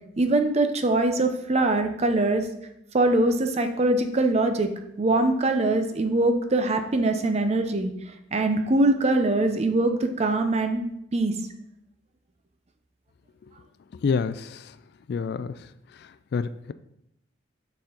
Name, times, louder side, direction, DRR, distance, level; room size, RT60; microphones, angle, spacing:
voice 1, 0.2-2.4 2.9-4.7 5.0-7.9 8.3-10.8 11.1-11.4, right 2 dB, 35° right, 7 dB, 0.5 m, -22 dB
voice 2, 14.0-14.7 15.1-15.5 16.3-16.7, left 5 dB, 60° left, 14 dB, 0.3 m, -27 dB
6.7 x 4.2 x 3.8 m, 0.78 s
head